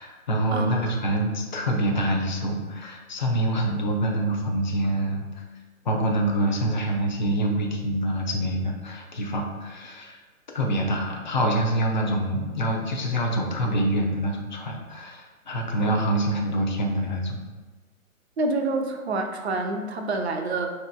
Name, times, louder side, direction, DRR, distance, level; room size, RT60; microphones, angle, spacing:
voice 1, 0.0-5.2 5.8-10.2 10.5-17.4, right 1 dB, 35° left, 1 dB, 0.4 m, -26 dB
voice 2, 0.5-0.9 18.4-20.7, right 3 dB, 50° right, 4 dB, 0.5 m, -27 dB
5.2 x 2.8 x 2.2 m, 1.3 s
hypercardioid pair, 140°, 42 cm